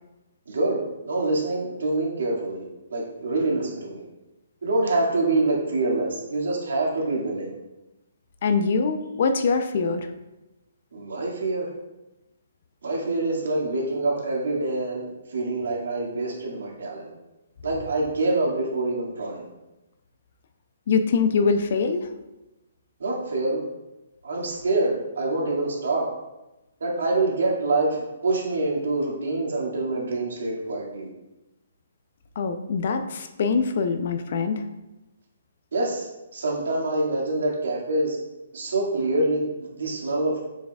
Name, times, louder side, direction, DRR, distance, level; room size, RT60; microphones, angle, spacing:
voice 1, 0.5-0.8 1.1-2.6 2.9-4.1 4.6-7.5 10.9-11.7 12.8-17.1 17.6-19.5 23.0-23.6 24.2-26.1 26.8-31.1 35.7-38.2 38.5-40.4, right 2 dB, 80° right, -2 dB, 2.1 m, -26 dB
voice 2, 8.4-10.1 20.9-22.1 32.4-34.6, left 5 dB, 45° left, 8 dB, 0.5 m, -23 dB
6.8 x 6.4 x 2.4 m, 1.0 s
hypercardioid pair, 170°, 0 cm